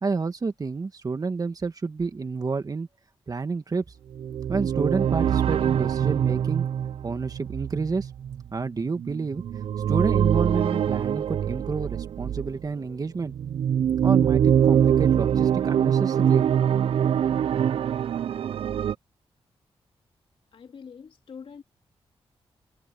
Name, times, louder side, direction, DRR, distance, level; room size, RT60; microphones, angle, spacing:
voice 1, 0.0-2.9 3.3-3.8 4.5-6.7 7.0-8.1 8.5-9.4 9.9-13.3 14.0-16.5, right 4 dB, 40° right, 1.7 m, -29 dB
sound 1, 4.1-12.6 13.2-18.9, right 9 dB, 70° right, 0.4 m, -24 dB
voice 2, 20.5-21.6, left 6 dB, 65° left, 2.7 m, -44 dB
wide cardioid pair, 110°, 10 cm